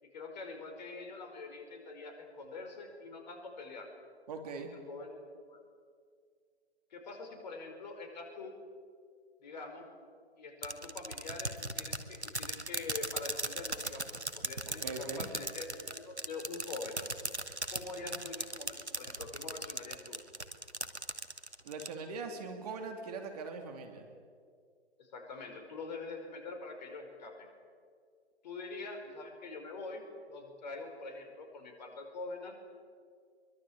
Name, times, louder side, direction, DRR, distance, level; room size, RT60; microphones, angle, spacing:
voice 1, 0.0-3.9 4.6-5.2 5.5-5.6 6.9-8.6 9.4-9.9 10.4-14.1 14.3-17.1 17.7-20.2 25.0-27.5 28.4-32.6, left 3 dB, 40° left, 4 dB, 5.1 m, -44 dB
voice 2, 4.3-4.7 14.8-15.3 18.0-18.2 21.6-24.1, right 4 dB, 35° right, 5 dB, 3.0 m, -41 dB
sound 1, 10.6-21.9, right 2 dB, 85° right, 2.0 m, -38 dB
23.5 x 23.0 x 8.6 m, 2.1 s
figure-of-eight pair, 130°, 33 cm